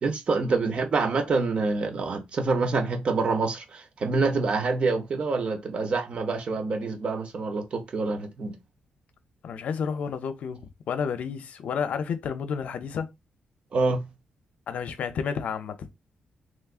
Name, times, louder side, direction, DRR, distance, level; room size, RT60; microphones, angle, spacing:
voice 1, 0.0-8.6 13.7-14.1, right 3 dB, 40° right, 0.7 m, -26 dB
voice 2, 9.4-10.6 10.9-13.1 14.7-15.9, left 6 dB, 60° left, 0.6 m, -30 dB
3.5 x 3.1 x 2.4 m
wide cardioid pair, 155°, 3 cm